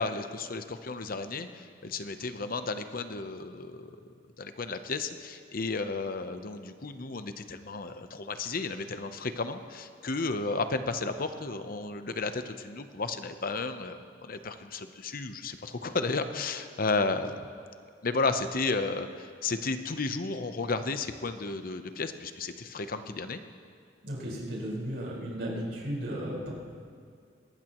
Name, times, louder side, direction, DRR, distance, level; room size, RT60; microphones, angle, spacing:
voice 1, 0.0-17.5 18.0-23.4, left 3 dB, 55° left, 9 dB, 0.8 m, -33 dB
voice 2, 24.0-26.5, equal, 75° right, -5 dB, 4.8 m, -35 dB
22.0 x 19.0 x 3.1 m, 2.2 s
head